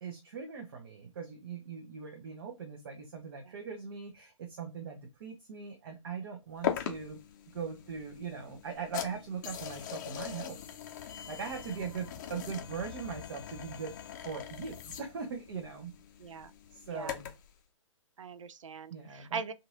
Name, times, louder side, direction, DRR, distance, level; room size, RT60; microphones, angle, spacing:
voice 1, 0.0-7.2 7.5-10.6 11.3-13.9 14.2-15.9 16.7-17.3 18.9-19.4, right 6 dB, 45° right, 0.8 m, -40 dB
sound 1, 6.6-17.5, left 11 dB, 35° left, 0.6 m, -41 dB
voice 2, 16.2-16.5 16.9-17.2 18.2-19.5, right 5 dB, 70° right, 0.4 m, -41 dB
4.0 x 2.5 x 2.5 m
figure-of-eight pair, 130°, 17 cm